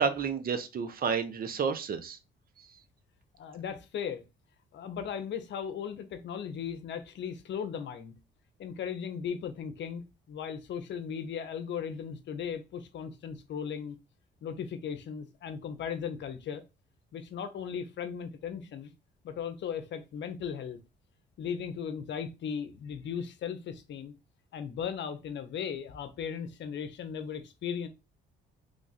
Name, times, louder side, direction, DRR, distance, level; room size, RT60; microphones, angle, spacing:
voice 1, 0.0-2.2, right 6 dB, 50° right, 0.7 m, -30 dB
voice 2, 3.4-4.2 4.7-8.1 8.6-14.0 14.4-16.6 17.1-18.9 19.2-20.8 21.4-24.1 24.5-27.9, left 7 dB, 65° left, 0.7 m, -37 dB
3.2 x 2.4 x 4.0 m
cardioid pair, 90°, 20 cm